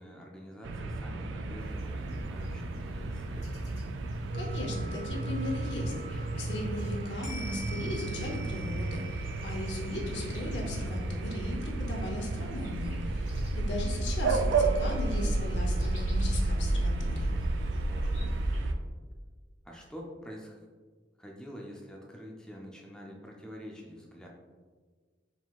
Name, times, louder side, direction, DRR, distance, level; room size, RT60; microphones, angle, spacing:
voice 1, 0.0-3.7 17.9-18.3 19.6-20.6 21.2-24.3, equal, 5° left, -2 dB, 0.4 m, -46 dB
sound 1, 0.6-18.8, right 2 dB, 90° right, 0.3 m, -32 dB
sound 2, 1.6-18.6, right 2 dB, 45° left, 1.3 m, -49 dB
voice 2, 4.3-13.3 13.5-17.4, left 1 dB, 75° left, 0 dB, 0.8 m, -38 dB
4.6 x 3.7 x 2.3 m, 1.5 s
head